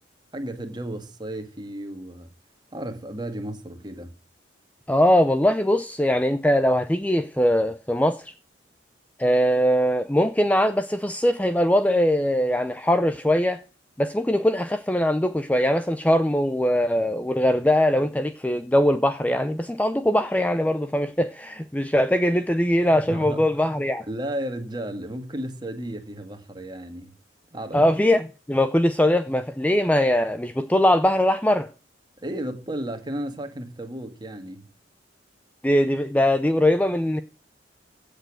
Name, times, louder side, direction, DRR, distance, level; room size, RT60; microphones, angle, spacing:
voice 1, 0.3-2.3 2.7-4.1 23.1-23.8 24.0-27.1 27.5-27.9 32.2-34.7, right 1 dB, 25° right, 1.8 m, -33 dB
voice 2, 4.9-8.3 9.2-13.6 14.0-24.1 27.7-31.7 35.6-37.2, left 1 dB, 10° left, 0.6 m, -21 dB
16.0 x 6.8 x 6.3 m
head